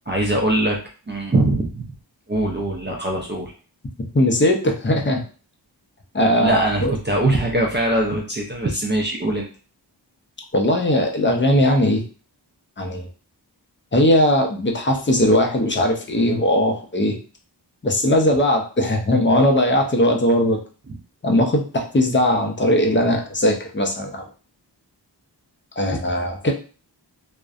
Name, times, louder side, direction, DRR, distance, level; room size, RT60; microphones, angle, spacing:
voice 1, 0.1-0.8 1.1-1.9 2.3-3.5 6.4-9.5 20.9-21.0, right 1 dB, 25° right, -2 dB, 0.4 m, -22 dB
voice 2, 4.1-5.2 6.1-6.9 10.5-12.0 12.8-13.1 13.9-17.2 17.8-20.6 21.2-24.2 25.8-26.5, left 1 dB, 25° left, 2 dB, 0.5 m, -19 dB
2.5 x 2.1 x 2.4 m, 0.38 s
wide cardioid pair, 65°, 43 cm